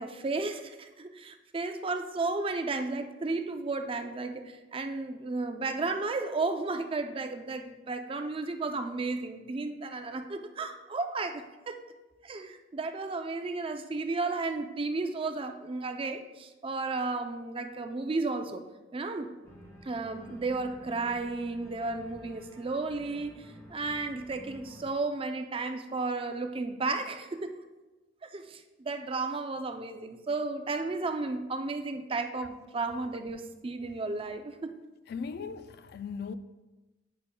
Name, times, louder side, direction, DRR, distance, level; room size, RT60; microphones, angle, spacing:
voice 1, 0.0-11.8 12.2-18.6 18.9-19.3 19.8-27.6 28.2-34.7, right 3 dB, 30° right, 0.4 m, -33 dB
Organ, 19.4-24.8, equal, 15° left, 1.2 m, -51 dB
voice 2, 35.1-36.4, left 5 dB, 60° left, 0.3 m, -38 dB
9.5 x 6.6 x 2.2 m
head